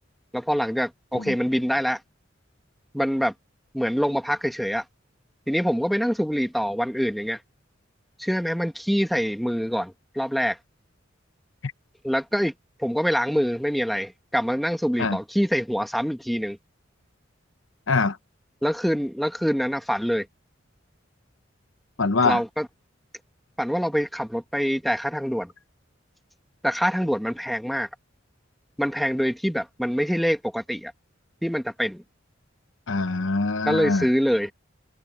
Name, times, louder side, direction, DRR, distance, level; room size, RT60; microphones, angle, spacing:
voice 1, 0.3-2.0 2.9-3.3 3.7-4.8 5.5-7.4 8.2-10.6 12.0-12.5 12.8-16.6 18.6-20.3 22.2-22.7 23.6-25.5 26.6-27.9 28.8-30.9 31.4-32.0 33.7-34.5, equal, ahead, 1.7 m, -25 dB
voice 2, 22.0-22.4 32.9-34.1, left 3 dB, 90° left, 0.9 m, -23 dB
head